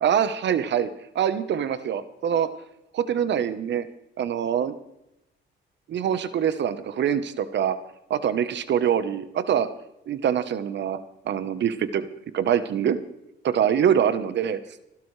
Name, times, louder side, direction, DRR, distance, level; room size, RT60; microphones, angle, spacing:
voice 1, 0.0-2.5 2.9-3.9 4.2-4.7 5.9-7.8 8.1-9.7 10.1-11.0 11.2-12.1 12.3-13.0 13.4-14.6, right 9 dB, 65° right, 13 dB, 1.0 m, -24 dB
28.0 x 12.0 x 3.3 m, 0.87 s
cardioid pair, 90°, 20 cm